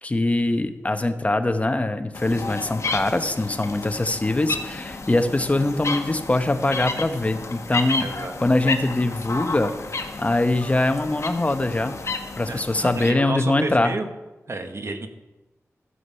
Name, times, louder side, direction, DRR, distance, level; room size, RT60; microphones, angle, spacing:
voice 1, 0.0-9.7 10.2-12.0 12.4-13.9, left 2 dB, 25° left, 8 dB, 0.9 m, -23 dB
sound 1, 2.1-13.1, left 3 dB, 60° left, 1.2 m, -32 dB
voice 2, 8.0-8.3 12.5-14.1 14.5-15.1, right 3 dB, 55° right, 7 dB, 1.2 m, -31 dB
14.0 x 7.9 x 5.6 m, 1.1 s
wide cardioid pair, 95°, 6 cm